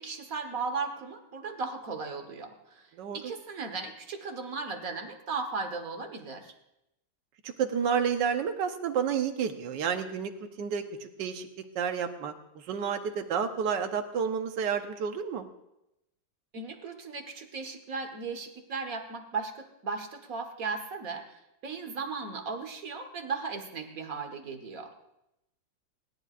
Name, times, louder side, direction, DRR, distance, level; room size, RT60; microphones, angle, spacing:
voice 1, 0.0-6.5 16.5-25.0, right 4 dB, 50° right, 5 dB, 1.7 m, -36 dB
voice 2, 7.4-10.3 10.6-11.5 11.7-15.5, right 7 dB, 70° right, 6 dB, 1.6 m, -30 dB
28.0 x 11.0 x 2.5 m, 0.86 s
omnidirectional pair, 2.0 m